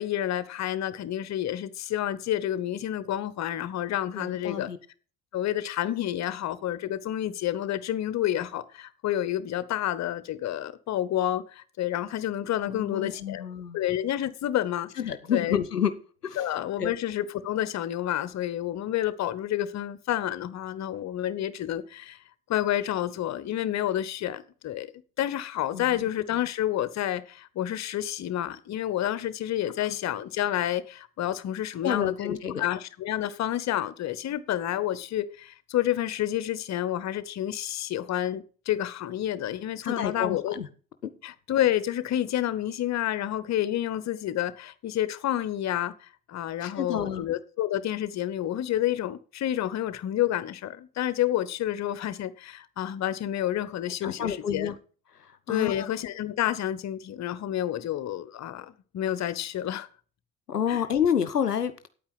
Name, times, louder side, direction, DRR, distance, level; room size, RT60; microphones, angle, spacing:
voice 1, 0.0-4.7 5.3-13.4 13.7-14.9 15.3-15.6 16.4-22.2 22.5-24.9 25.2-40.6 41.2-54.7 55.5-59.9 60.7-60.8, left 12 dB, 35° left, 1.0 m, -29 dB
voice 2, 4.1-4.8 12.7-13.8 15.0-15.9 16.2-16.4 16.8-16.9 25.7-26.0 31.8-32.6 39.8-40.7 41.0-41.1 46.6-47.3 54.0-54.7 55.5-55.9 60.5-61.9, left 8 dB, 90° left, 0.6 m, -29 dB
9.4 x 8.7 x 6.0 m
figure-of-eight pair, 60°, 46 cm